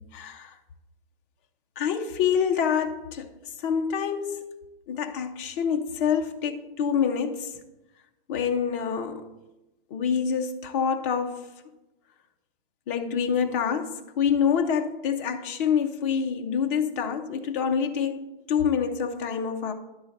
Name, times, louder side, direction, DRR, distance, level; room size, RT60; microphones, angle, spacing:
voice 1, 0.1-0.5 1.8-3.3 3.6-4.4 4.9-7.5 8.3-9.3 9.9-11.4 12.9-19.7, left 7 dB, 15° left, 0.4 m, -26 dB
10.5 x 3.9 x 7.1 m
hypercardioid pair, 155°, 30 cm